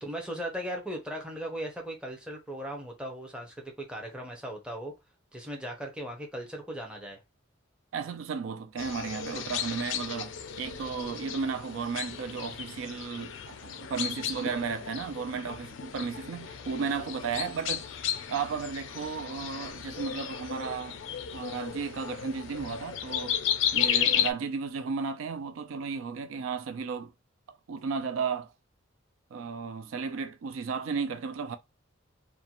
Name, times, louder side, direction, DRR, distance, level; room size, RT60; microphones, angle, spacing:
voice 1, 0.0-4.9 5.3-7.2, right 1 dB, 5° right, 0.6 m, -38 dB
voice 2, 7.9-17.9 18.3-21.0 21.3-23.4 23.7-27.1 27.7-28.5 29.3-31.5, right 5 dB, 85° right, 0.4 m, -34 dB
sound 1, 8.8-24.3, left 9 dB, 70° left, 0.4 m, -34 dB
2.5 x 2.2 x 2.8 m
head